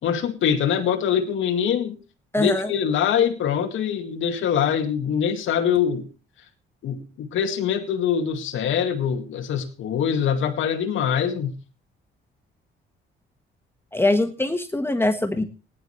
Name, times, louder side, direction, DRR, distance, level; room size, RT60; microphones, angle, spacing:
voice 1, 0.0-2.0 2.4-6.1 6.8-11.5, left 8 dB, 75° left, 4 dB, 2.3 m, -23 dB
voice 2, 2.3-2.7 13.9-15.4, left 2 dB, 10° left, 8 dB, 1.5 m, -22 dB
18.5 x 11.0 x 3.3 m, 0.33 s
cardioid pair, 90°, 20 cm